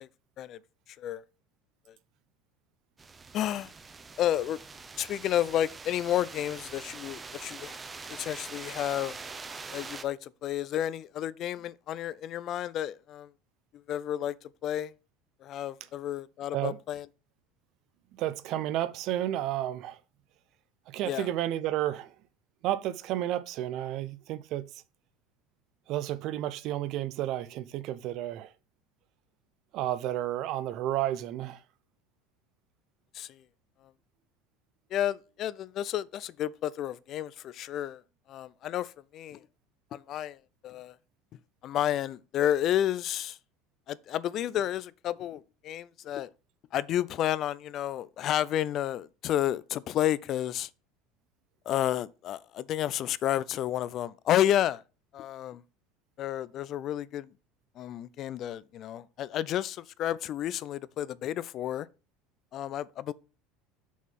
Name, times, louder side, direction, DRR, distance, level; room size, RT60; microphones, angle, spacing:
sound 1, 3.0-10.0, right 4 dB, 20° right, 0.7 m, -44 dB
voice 1, 3.3-3.7 4.2-4.6 5.0-7.8 8.1-9.2 9.7-13.3 13.9-14.3 14.6-14.9 15.4-17.1 21.1-21.3 33.1-33.4 34.9-38.0 38.3-39.4 39.9-40.4 40.6-40.9 41.6-43.4 43.9-46.3 46.7-50.7 51.7-54.8 55.1-55.6 56.2-57.3 57.8-61.9 62.5-63.1, left 11 dB, 50° left, 0.4 m, -31 dB
voice 2, 18.2-20.0 20.9-22.1 22.6-24.7 25.9-28.5 29.7-31.6, right 13 dB, 60° right, 0.6 m, -31 dB
6.2 x 3.7 x 5.8 m
supercardioid pair, 110°, 0 cm